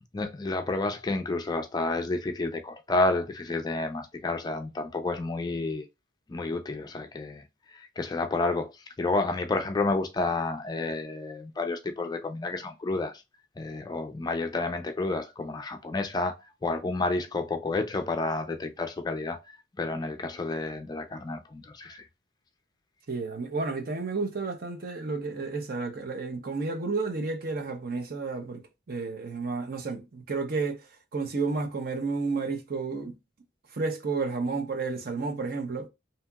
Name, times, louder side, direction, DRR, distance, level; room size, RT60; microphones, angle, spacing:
voice 1, 0.1-5.9 6.3-13.2 13.6-19.4 19.8-22.0, left 3 dB, 20° left, 0.3 m, -30 dB
voice 2, 23.1-28.6 28.9-33.2 33.7-35.9, right 4 dB, 50° right, 0.6 m, -31 dB
2.8 x 2.7 x 2.2 m
head